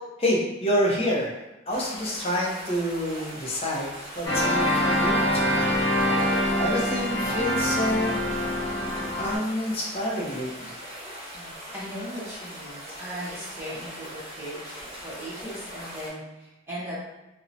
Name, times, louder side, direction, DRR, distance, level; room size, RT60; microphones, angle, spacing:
voice 1, 0.2-1.4 1.7-5.7 6.1-6.2 6.6-8.2 9.2-10.8, equal, 30° left, -3 dB, 0.5 m, -28 dB
sound 1, 1.7-16.1, equal, 35° right, 1.1 m, -41 dB
sound 2, 4.2-9.4, equal, 65° left, 0.8 m, -25 dB
voice 2, 11.3-17.0, equal, 15° right, -8 dB, 0.7 m, -38 dB
2.6 x 2.0 x 2.5 m, 1.0 s
head